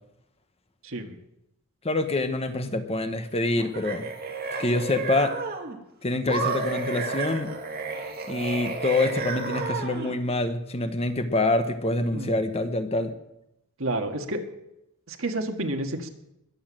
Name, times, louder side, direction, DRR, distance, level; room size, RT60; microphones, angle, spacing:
voice 1, 0.8-1.2 12.1-12.4 13.8-14.4 15.1-16.1, right 1 dB, 65° right, 4 dB, 1.7 m, -30 dB
voice 2, 1.8-4.1 4.6-5.3 6.0-7.5 8.3-13.1, left 2 dB, 30° left, 9 dB, 1.0 m, -26 dB
sound 1, 3.5-5.8 6.3-10.2, right 4 dB, 45° right, 2.2 m, -31 dB
21.0 x 7.1 x 7.5 m, 0.87 s
head